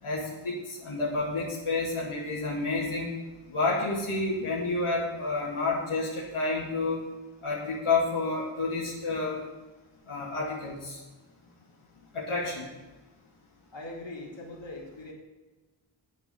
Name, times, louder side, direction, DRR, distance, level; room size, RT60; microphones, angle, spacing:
voice 1, 0.0-3.1 3.5-7.0 7.4-9.4 10.1-11.0 12.1-12.7, left 3 dB, 85° left, -5 dB, 2.9 m, -29 dB
voice 2, 13.7-15.1, left 2 dB, 65° left, -2 dB, 3.5 m, -41 dB
9.8 x 8.7 x 7.1 m, 1.2 s
wide cardioid pair, 85°, 48 cm